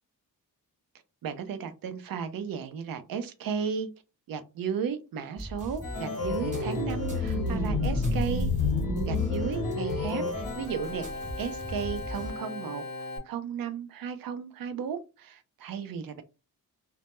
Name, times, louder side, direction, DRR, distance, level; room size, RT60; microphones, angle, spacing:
voice 1, 1.2-3.9 4.3-8.5 9.1-11.1 11.4-16.2, right 6 dB, 70° right, 0.5 m, -34 dB
sound 1, 5.4-12.3, equal, 20° right, 0.9 m, -41 dB
Organ, 5.8-13.2, left 3 dB, 70° left, 0.8 m, -30 dB
2.1 x 2.1 x 2.9 m
wide cardioid pair, 135°, 36 cm